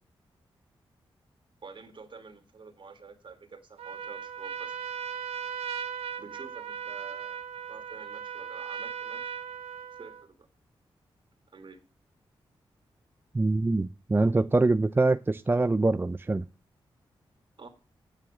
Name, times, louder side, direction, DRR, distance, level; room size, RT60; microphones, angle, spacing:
voice 1, 1.6-4.8 6.2-7.4 7.7-9.3 10.0-10.5 11.5-11.8 17.6-17.7, right 4 dB, 55° right, 6 dB, 2.6 m, -48 dB
Trumpet, 3.8-10.2, right 8 dB, 85° right, 0.8 m, -37 dB
voice 2, 13.3-16.4, right 2 dB, 20° right, 12 dB, 0.5 m, -24 dB
8.9 x 7.3 x 7.2 m, 0.34 s
cardioid pair, 50°, 10 cm